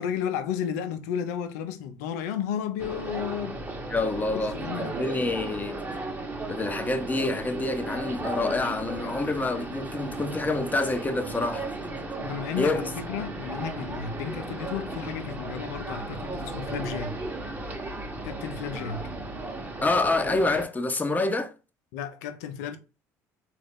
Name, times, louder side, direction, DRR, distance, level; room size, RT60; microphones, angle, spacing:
voice 1, 0.0-3.6 4.3-4.9 12.2-17.2 18.2-19.1 21.9-22.8, left 8 dB, 75° left, 0.6 m, -33 dB
sound 1, 2.8-20.6, right 2 dB, 20° right, 1.0 m, -35 dB
voice 2, 3.9-5.8 6.5-11.7 12.6-12.9 19.8-21.5, left 2 dB, 20° left, 0.7 m, -27 dB
3.9 x 2.5 x 3.5 m
hypercardioid pair, 60°, 9 cm